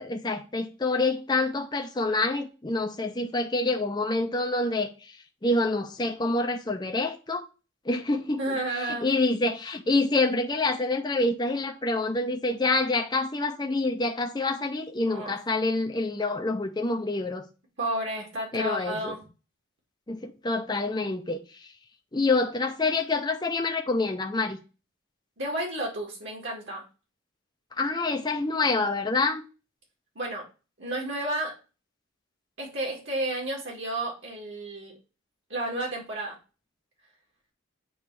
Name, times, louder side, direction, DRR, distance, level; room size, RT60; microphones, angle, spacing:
voice 1, 0.0-4.9 5.4-7.4 7.9-8.4 8.7-17.4 18.5-19.1 20.1-21.4 22.1-24.6 27.8-29.4, left 2 dB, 20° left, 0.6 m, -27 dB
voice 2, 8.4-9.1 15.1-15.4 17.8-19.2 25.4-26.8 30.2-30.4 30.8-31.5 32.6-34.9 35.5-36.4, right 1 dB, 60° right, 2.1 m, -31 dB
8.5 x 3.2 x 4.7 m
head